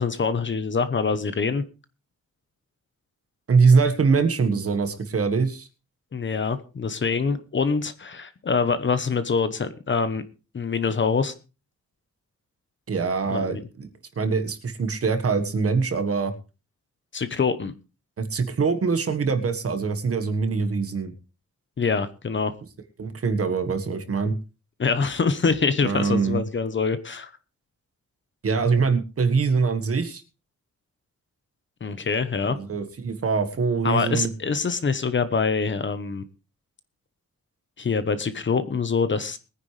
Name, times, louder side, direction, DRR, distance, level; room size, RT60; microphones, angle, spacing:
voice 1, 0.0-1.6 6.1-10.2 10.5-11.3 13.3-13.6 17.1-17.7 21.8-22.5 24.8-27.3 31.8-32.6 33.8-36.2 37.8-39.4, left 5 dB, 40° left, 12 dB, 1.0 m, -25 dB
voice 2, 3.5-5.7 12.9-13.9 14.1-16.3 18.2-21.1 23.0-24.4 25.8-26.4 28.4-30.2 32.4-34.3, right 5 dB, 50° right, 9 dB, 1.6 m, -23 dB
22.0 x 9.7 x 3.3 m, 0.32 s
wide cardioid pair, 170°, 31 cm